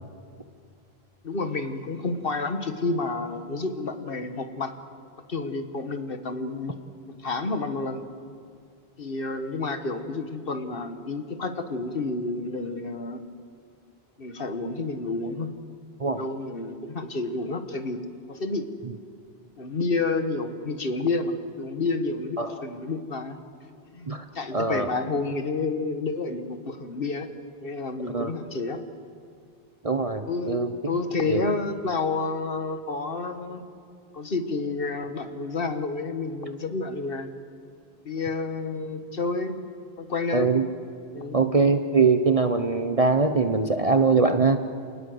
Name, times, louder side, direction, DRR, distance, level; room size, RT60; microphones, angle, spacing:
voice 1, 1.2-4.7 5.3-6.8 7.1-8.0 9.0-13.2 14.2-15.5 16.1-18.0 18.3-18.7 19.6-23.4 23.9-24.1 24.4-27.3 27.6-28.8 30.3-30.6 30.9-33.6 34.1-37.3 38.0-39.6 40.0-40.5 41.1-41.4, left 3 dB, 65° left, 8 dB, 1.7 m, -30 dB
voice 2, 24.5-24.9 28.1-28.3 29.8-30.7 31.3-31.4 40.3-40.7 41.3-44.6, right 4 dB, 35° right, 8 dB, 1.0 m, -22 dB
28.5 x 19.0 x 8.0 m, 2.3 s
omnidirectional pair, 1.0 m